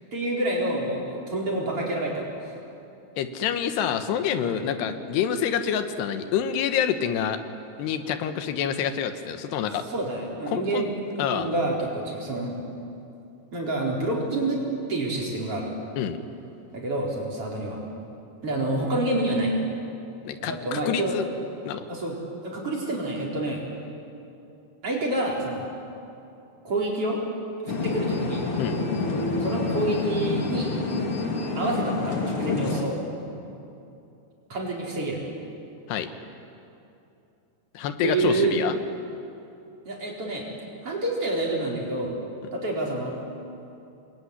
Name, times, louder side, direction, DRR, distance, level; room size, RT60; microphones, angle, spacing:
voice 1, 0.0-2.5 4.5-4.6 9.9-12.6 13.5-14.6 14.9-15.7 16.7-17.8 18.4-19.5 20.4-21.2 21.9-22.2 22.4-23.6 24.8-25.7 26.6-27.2 27.8-28.4 29.4-30.7 31.5-33.0 34.5-35.2 38.0-38.6 39.8-40.4 40.8-42.1 42.5-43.2, right 2 dB, 35° right, -2 dB, 5.0 m, -28 dB
voice 2, 3.2-7.4 7.8-9.8 10.5-10.9 11.2-11.5 16.0-16.2 20.2-21.3 21.6-21.8 28.6-28.8 35.9-36.1 37.7-38.7, left 8 dB, 85° left, 9 dB, 3.3 m, -27 dB
sound 1, 27.7-32.8, left 3 dB, 40° left, 2.9 m, -27 dB
27.5 x 21.5 x 9.8 m, 2.7 s
omnidirectional pair, 4.7 m